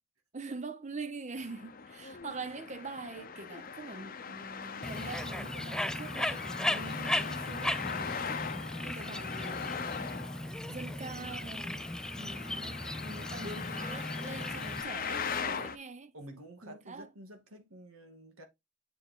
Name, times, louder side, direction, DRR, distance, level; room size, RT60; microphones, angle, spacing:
voice 1, 0.3-9.9 10.7-11.9 12.2-16.1 16.6-17.1, right 3 dB, 35° right, 0.9 m, -44 dB
Traffic noise roadway noise, 1.4-15.8, left 6 dB, 45° left, 0.7 m, -40 dB
Bird, 4.8-14.8, left 1 dB, 5° left, 0.3 m, -37 dB
voice 2, 16.1-18.4, right 1 dB, 90° right, 2.3 m, -50 dB
8.4 x 4.7 x 3.7 m
head